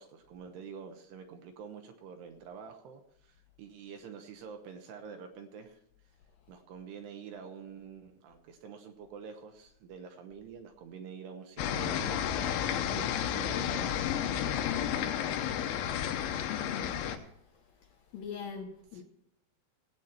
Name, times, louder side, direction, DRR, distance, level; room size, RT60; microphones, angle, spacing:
voice 1, 0.0-5.8 6.5-12.2 12.7-14.2 14.9-15.6 18.9-19.0, right 6 dB, 75° right, 5 dB, 2.8 m, -47 dB
sound 1, 11.6-17.2, left 9 dB, 90° left, 3.4 m, -32 dB
voice 2, 16.5-16.9 18.1-19.0, left 7 dB, 65° left, -1 dB, 2.5 m, -41 dB
19.0 x 8.3 x 4.4 m, 0.76 s
omnidirectional pair, 5.3 m